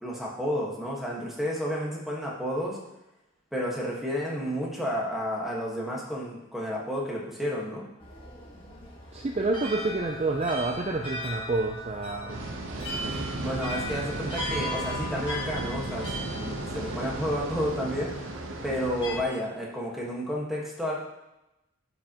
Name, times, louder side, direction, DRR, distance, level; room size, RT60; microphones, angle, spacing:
voice 1, 0.0-2.8 3.5-7.9 13.4-18.1 18.6-21.0, equal, ahead, -4 dB, 1.4 m, -31 dB
sound 1, 8.0-19.2, equal, 25° left, 1.5 m, -38 dB
voice 2, 9.1-12.4, right 2 dB, 30° right, 2 dB, 0.4 m, -28 dB
sound 2, 12.3-19.2, right 2 dB, 65° right, 0.9 m, -35 dB
11.5 x 5.4 x 3.0 m, 0.92 s
head